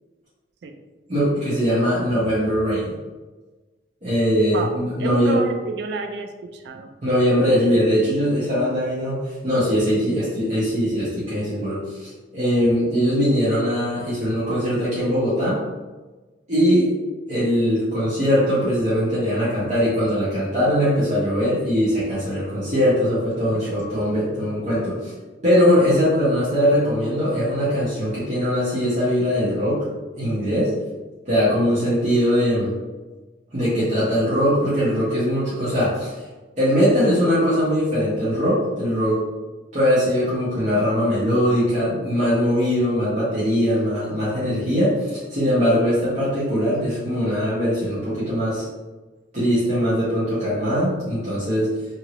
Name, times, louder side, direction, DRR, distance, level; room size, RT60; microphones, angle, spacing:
voice 1, 1.1-2.9 4.0-5.4 7.0-15.6 16.5-16.9 17.3-25.1 25.4-29.8 30.1-30.7 31.3-32.7 33.5-36.2 36.6-39.2 39.7-48.6 49.3-51.7, equal, 40° right, -11 dB, 1.0 m, -21 dB
voice 2, 5.0-6.9 23.7-23.8, right 3 dB, 65° right, 5 dB, 0.3 m, -29 dB
3.0 x 2.7 x 2.9 m, 1.2 s
head